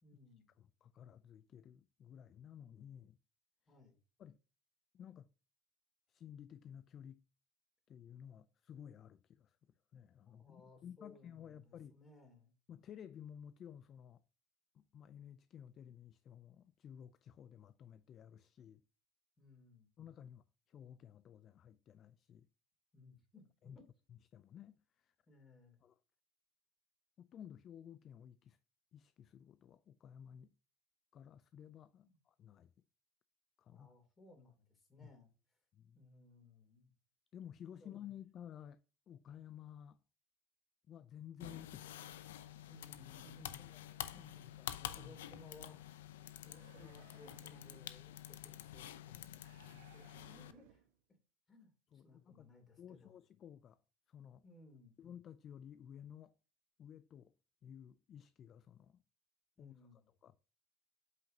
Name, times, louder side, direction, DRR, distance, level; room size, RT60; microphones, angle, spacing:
voice 1, 0.0-0.5 3.7-4.0 10.3-12.5 19.4-19.9 22.9-23.8 25.3-25.8 32.0-32.2 33.7-35.3 35.9-36.9 37.8-38.1 42.7-43.8 44.1-44.4 44.9-45.8 46.4-50.8 51.5-51.7 52.0-53.1 54.4-55.0 59.6-60.1, left 2 dB, 25° left, 3.3 m, -62 dB
voice 2, 0.6-3.2 3.7-3.8 4.2-4.4 4.9-5.3 6.1-7.2 7.9-12.0 12.7-14.2 14.7-18.8 20.0-22.5 23.6-23.8 24.1-25.1 25.8-25.9 27.2-28.6 28.9-30.5 31.1-32.7 33.6-33.9 35.0-35.1 35.7-36.0 37.3-40.0 40.9-42.4 43.6-43.9 44.1-45.1 45.6-45.7 46.8-46.9 51.9-52.5 52.8-53.8 54.1-54.4 55.0-56.4 56.8-57.3 57.6-59.0 59.6-60.5, left 9 dB, 40° left, 0.4 m, -54 dB
sound 1, 41.4-50.5, left 12 dB, 90° left, 0.6 m, -49 dB
sound 2, 46.4-48.0 49.3-51.0, right 10 dB, 80° right, 1.2 m, -64 dB
7.8 x 5.8 x 2.8 m
supercardioid pair, 100°, 0 cm